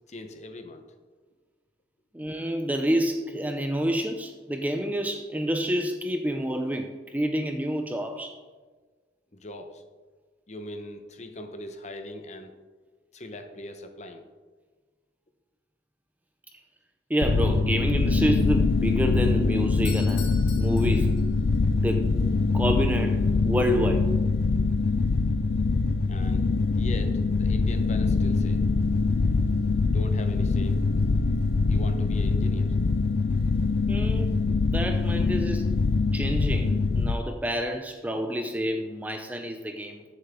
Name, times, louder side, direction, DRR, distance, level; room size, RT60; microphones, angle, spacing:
voice 1, 0.1-0.8 9.3-9.8 10.5-12.5 13.1-14.2 26.1-26.5 26.7-28.6 29.8-30.8 31.7-32.8, left 1 dB, 40° left, 1.0 m, -40 dB
voice 2, 2.1-8.4 17.1-20.2 20.6-21.2 21.7-22.2 22.5-24.1 33.9-35.7 36.1-40.0, equal, 10° right, 0.5 m, -28 dB
sound 1, 17.2-37.1, left 3 dB, 55° left, 0.4 m, -24 dB
Doorbell, 19.8-21.7, left 6 dB, 75° left, 1.9 m, -43 dB
13.5 x 7.4 x 3.7 m
head